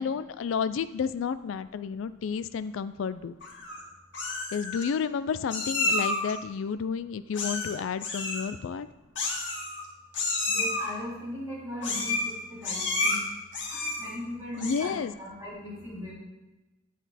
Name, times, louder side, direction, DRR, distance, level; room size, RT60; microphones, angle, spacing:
voice 1, 0.0-3.4 4.5-8.9 14.6-15.1, left 6 dB, 85° left, 13 dB, 0.3 m, -31 dB
voice 2, 2.6-3.7 6.8-6.9 8.1-9.3 10.5-13.2 13.5-16.1, left 1 dB, 15° right, -8 dB, 3.8 m, -40 dB
Meow, 3.4-3.8 4.1-4.8 5.5-6.3 7.3-7.7 8.0-8.4 9.2-9.9 10.1-10.9 11.8-12.3 12.6-13.2 13.5-14.1 14.5-15.0, left 3 dB, 65° left, 2.1 m, -30 dB
9.3 x 8.1 x 4.1 m, 1.1 s
head